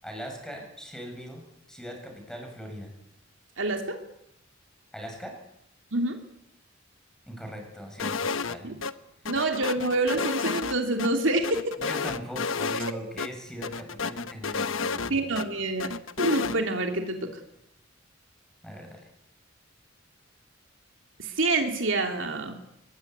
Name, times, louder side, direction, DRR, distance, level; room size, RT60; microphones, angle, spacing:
voice 1, 0.0-1.4 1.7-2.9 4.9-5.4 7.3-8.7 11.8-15.2 18.6-19.1, equal, 5° left, 3 dB, 7.6 m, -40 dB
voice 2, 3.6-4.0 5.9-6.2 8.6-8.7 9.2-11.6 15.1-15.9 16.2-17.3 21.2-22.5, right 2 dB, 70° right, 4 dB, 3.2 m, -27 dB
sound 1, 8.0-8.6 8.8-8.9 9.3-11.1 11.4-12.9 13.2-13.3 13.6-15.5 15.8-16.6, left 5 dB, 85° left, 1.2 m, -31 dB
24.0 x 21.0 x 9.6 m, 0.80 s
head